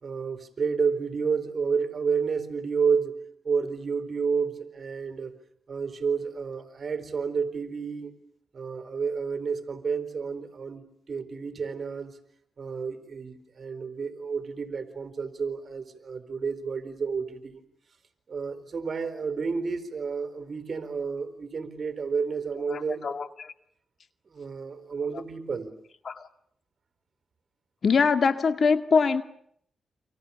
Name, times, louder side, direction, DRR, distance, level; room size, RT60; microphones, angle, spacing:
voice 1, 0.0-3.2 3.4-5.3 5.7-8.1 8.5-12.1 12.6-17.5 18.3-23.1 24.3-25.7, right 5 dB, 55° right, 10 dB, 4.3 m, -30 dB
voice 2, 22.7-23.5 26.1-26.2 27.8-29.2, left 5 dB, 60° left, 9 dB, 2.1 m, -23 dB
30.0 x 27.0 x 7.2 m, 0.68 s
cardioid pair, 65°, 0 cm